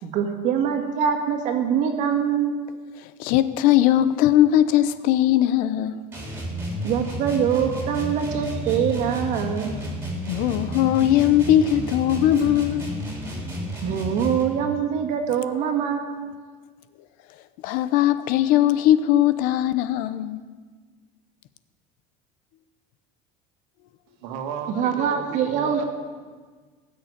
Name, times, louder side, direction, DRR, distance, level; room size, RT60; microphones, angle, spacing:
voice 1, 0.0-2.6 6.8-9.7 13.8-16.4 24.7-25.8, right 8 dB, 45° right, 1.8 m, -24 dB
voice 2, 3.2-6.0 10.3-12.8 17.6-20.4, left 12 dB, 55° left, 0.7 m, -19 dB
sound 1, 6.1-14.6, equal, 10° right, 3.0 m, -31 dB
voice 3, 24.2-25.8, right 7 dB, 80° right, 2.0 m, -33 dB
17.5 x 6.6 x 9.7 m
cardioid pair, 175°, 17 cm